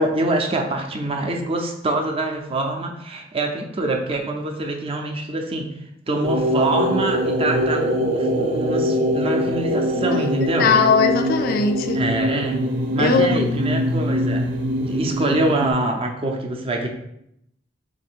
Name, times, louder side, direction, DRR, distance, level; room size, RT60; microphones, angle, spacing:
voice 1, 0.0-5.7 6.1-10.7 11.9-14.5 14.8-16.9, right 2 dB, 30° right, 2 dB, 0.5 m, -25 dB
sound 1, 6.2-15.7, equal, 80° right, 0.6 m, -23 dB
voice 2, 9.9-12.0 13.0-13.5, left 5 dB, 55° left, 7 dB, 0.3 m, -20 dB
3.2 x 2.7 x 4.4 m, 0.79 s
head